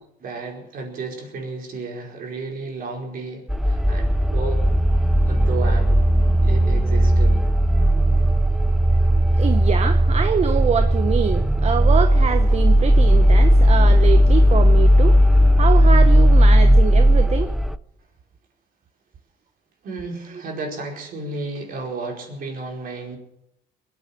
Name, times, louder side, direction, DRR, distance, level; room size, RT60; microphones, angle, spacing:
voice 1, 0.2-4.6 5.3-6.0 6.4-7.3 19.8-23.2, right 3 dB, 60° right, 4.9 m, -32 dB
sound 1, 3.5-17.8, equal, ahead, 0.5 m, -16 dB
voice 2, 9.4-15.2 15.6-17.5 20.3-20.4, right 7 dB, 40° right, 1.0 m, -25 dB
22.0 x 8.7 x 7.3 m
cardioid pair, 110°, 17 cm